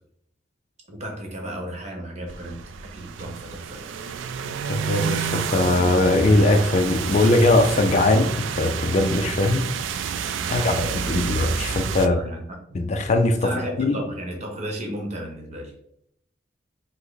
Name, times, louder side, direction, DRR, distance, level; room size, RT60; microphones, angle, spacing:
voice 1, 0.9-3.9 6.3-6.5 10.4-10.9 11.7-12.8 13.4-15.7, equal, 35° right, 1.0 m, -34 dB
sound 1, 2.3-12.1, right 7 dB, 85° right, 0.4 m, -29 dB
voice 2, 4.7-10.1 10.5-12.2 12.7-14.0, left 2 dB, 35° left, 0.4 m, -21 dB
5.3 x 2.1 x 4.0 m
head